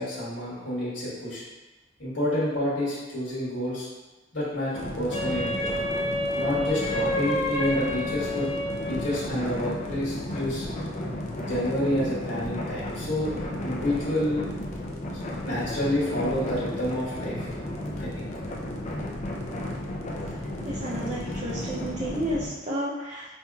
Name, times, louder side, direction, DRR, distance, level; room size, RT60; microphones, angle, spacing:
voice 1, 0.0-1.4 2.0-3.9 4.3-5.7 6.3-8.5 8.9-10.7 11.4-13.3 13.6-14.5 15.1-17.5 18.0-18.3, left 1 dB, 85° left, -8 dB, 1.3 m, -29 dB
sound 1, 4.7-22.5, left 1 dB, 35° left, 0.5 m, -34 dB
Wind instrument woodwind instrument, 5.1-9.2, left 1 dB, 70° left, 1.1 m, -29 dB
voice 2, 20.7-23.3, right 1 dB, 35° right, -6 dB, 0.5 m, -31 dB
5.2 x 2.8 x 2.3 m, 1.2 s
head